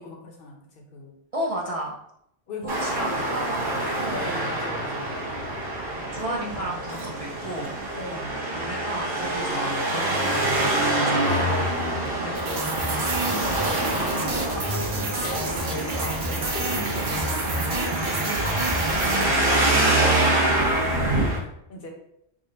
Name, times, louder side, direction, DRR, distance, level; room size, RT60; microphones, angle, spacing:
voice 1, 0.0-1.2 2.5-3.3 3.9-5.2 6.1-6.9 7.9-8.6 9.5-9.8 10.9-11.2 11.7-12.2 13.3-17.7 19.1-21.9, left 1 dB, 65° left, 1 dB, 0.9 m, -39 dB
voice 2, 1.3-2.0 2.6-4.5 5.8-7.7 8.5-13.0 18.4-18.7 19.7-20.0, right 1 dB, 45° right, -3 dB, 0.5 m, -34 dB
Traffic noise roadway noise, 2.7-21.4, right 1 dB, 25° right, 0.9 m, -26 dB
sound 1, 12.3-19.9, right 2 dB, 75° right, 1.0 m, -29 dB
3.7 x 2.0 x 3.8 m, 0.75 s
omnidirectional pair, 1.1 m